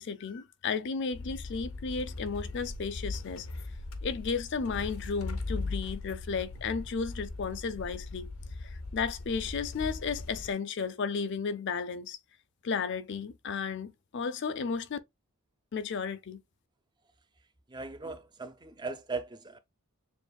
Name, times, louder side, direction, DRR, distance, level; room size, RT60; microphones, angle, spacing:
voice 1, 0.0-3.5 4.0-8.3 8.6-12.2 12.6-15.0 15.7-16.4, left 5 dB, 55° left, 0.4 m, -34 dB
sound 1, 1.1-10.5, left 2 dB, 70° left, 0.8 m, -39 dB
voice 2, 17.7-19.6, right 3 dB, 20° right, 0.5 m, -38 dB
6.9 x 2.5 x 2.2 m
head